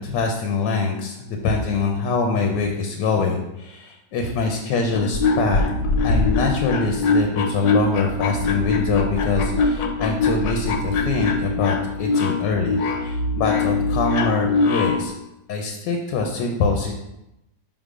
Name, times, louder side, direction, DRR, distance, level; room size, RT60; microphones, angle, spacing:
voice 1, 0.0-5.6 6.0-15.1 15.5-16.9, left 4 dB, 90° left, 2 dB, 1.4 m, -24 dB
sound 1, 4.8-15.1, left 3 dB, 65° left, 1.1 m, -22 dB
5.7 x 3.7 x 4.9 m, 0.89 s
omnidirectional pair, 1.9 m